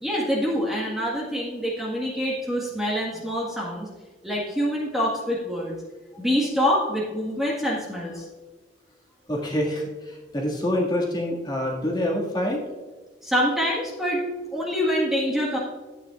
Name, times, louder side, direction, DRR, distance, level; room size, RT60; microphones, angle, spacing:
voice 1, 0.0-3.9 4.2-5.7 6.1-8.2 13.2-14.2 14.5-15.6, equal, ahead, -5 dB, 1.6 m, -25 dB
voice 2, 9.3-12.6, left 1 dB, 20° left, -2 dB, 2.0 m, -26 dB
12.5 x 9.1 x 2.5 m, 1.3 s
head